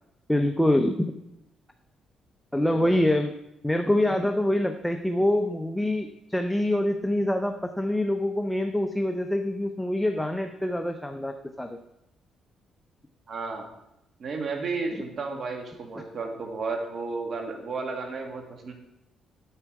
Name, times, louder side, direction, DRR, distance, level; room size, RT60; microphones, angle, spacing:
voice 1, 0.3-1.1 2.5-3.3 3.6-11.8, left 1 dB, 5° left, 6 dB, 0.7 m, -25 dB
voice 2, 2.6-3.0 13.3-13.7 14.2-18.7, right 4 dB, 50° right, 3 dB, 1.9 m, -33 dB
8.9 x 8.3 x 4.7 m, 0.85 s
cardioid pair, 90°, 0 cm